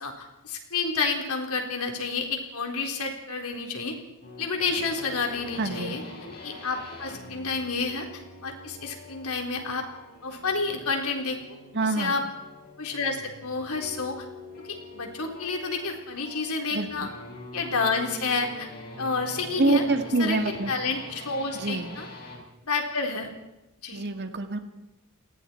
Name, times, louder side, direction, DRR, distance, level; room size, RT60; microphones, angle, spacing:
voice 1, 0.0-3.9 4.4-6.0 6.4-9.8 10.2-11.4 12.0-12.2 12.8-14.2 14.7-17.1 17.5-18.7 19.0-19.8 20.2-20.4 20.7-22.1 22.7-23.3 23.8-24.0, left 4 dB, 80° left, 2 dB, 4.0 m, -30 dB
sound 1, 4.2-22.5, left 2 dB, 45° left, 5.4 m, -44 dB
voice 2, 5.6-6.0 11.7-12.1 16.7-17.1 19.6-20.7 21.6-21.9 23.9-24.6, right 2 dB, 50° right, 6 dB, 2.0 m, -26 dB
29.5 x 20.0 x 4.6 m, 0.99 s
head